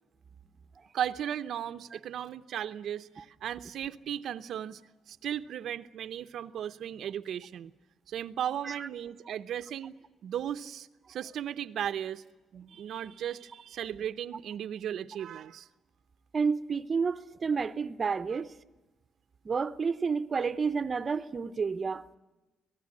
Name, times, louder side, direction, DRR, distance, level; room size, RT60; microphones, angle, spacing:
voice 1, 0.9-4.8 5.1-7.7 8.1-10.0 10.2-12.2 12.5-15.7 18.3-18.4, right 10 dB, 70° right, 0.8 m, -36 dB
voice 2, 16.3-18.5 19.4-22.0, right 5 dB, 35° right, 0.9 m, -30 dB
26.5 x 18.0 x 9.7 m
cardioid pair, 120°, 0 cm